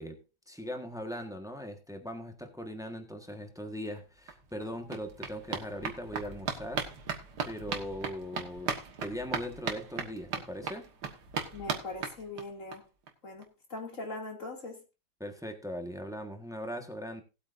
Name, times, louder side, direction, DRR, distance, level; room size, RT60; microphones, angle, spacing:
voice 1, 0.0-6.9 7.5-8.7 9.0-10.9 15.2-17.2, equal, ahead, 1.0 m, -40 dB
sound 1, 4.0-4.1 4.3-12.8 13.1-13.2 13.4-13.5 13.8-13.9, right 5 dB, 55° right, 2.0 m, -38 dB
voice 2, 11.5-12.9 13.2-14.8, left 2 dB, 35° left, 2.8 m, -41 dB
18.5 x 8.5 x 2.6 m
omnidirectional pair, 2.3 m